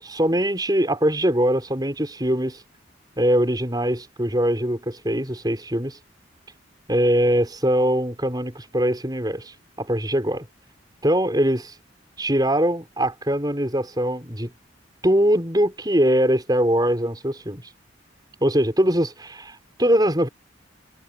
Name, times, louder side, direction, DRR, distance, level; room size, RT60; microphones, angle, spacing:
voice 1, 0.0-2.6 3.2-6.0 6.9-10.5 11.0-11.7 12.2-14.5 15.0-17.6 18.4-20.3, equal, 20° right, 6.5 m, -22 dB
head